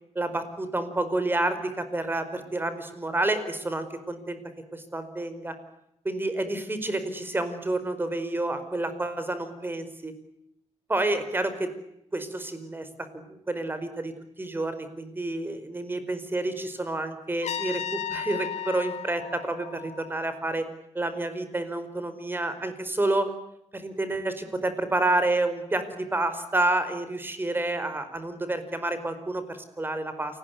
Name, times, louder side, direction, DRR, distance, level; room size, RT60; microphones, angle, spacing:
voice 1, 0.1-4.4 4.7-5.6 6.0-10.1 10.9-11.7 12.1-12.9 13.1-20.7 20.9-23.3 23.7-30.4, right 2 dB, 20° right, 11 dB, 4.8 m, -29 dB
Trumpet, 17.4-20.3, left 8 dB, 75° left, 3.6 m, -35 dB
28.5 x 20.0 x 9.6 m, 0.81 s
cardioid pair, 115°, 12 cm